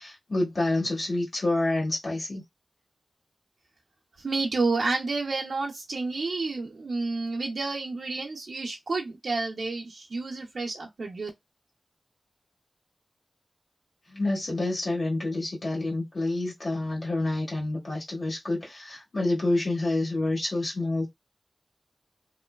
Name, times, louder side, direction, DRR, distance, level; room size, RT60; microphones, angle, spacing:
voice 1, 0.0-2.4 14.1-21.1, left 2 dB, 65° left, 1.6 m, -28 dB
voice 2, 4.2-11.3, right 3 dB, 85° right, 0.6 m, -30 dB
3.0 x 2.2 x 2.3 m
wide cardioid pair, 55°, 0 cm